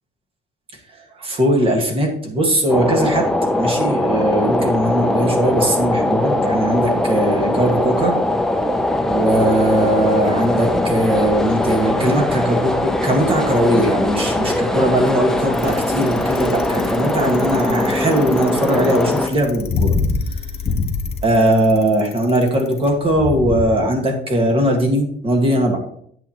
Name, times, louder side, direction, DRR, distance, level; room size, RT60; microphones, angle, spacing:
voice 1, 1.1-3.3 3.6-8.2 9.1-20.0 21.2-25.8, right 1 dB, 30° right, 2 dB, 1.7 m, -19 dB
sound 1, 2.7-19.3, left 1 dB, 5° left, 0.5 m, -20 dB
Bicycle, 15.5-23.6, left 4 dB, 35° left, 1.1 m, -24 dB
8.9 x 8.8 x 3.0 m, 0.65 s
cardioid pair, 170°, 18 cm